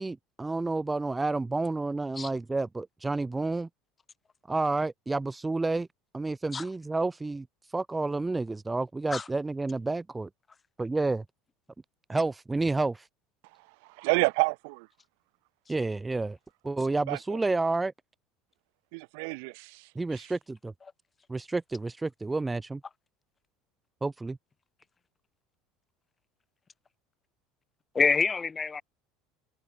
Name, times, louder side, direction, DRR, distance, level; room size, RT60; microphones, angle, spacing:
voice 1, 0.0-3.7 4.5-5.9 6.1-10.3 10.8-11.2 12.1-13.1 15.7-16.4 16.6-17.9 20.0-20.7 21.3-22.8 24.0-24.4, right 3 dB, 15° right, 0.5 m, -30 dB
voice 2, 13.8-14.9 17.1-17.2 18.9-20.3, right 32 dB, 80° right, 0.5 m, -29 dB
voice 3, 27.9-28.8, left 5 dB, 20° left, 1.3 m, -26 dB
supercardioid pair, 105°, 0 cm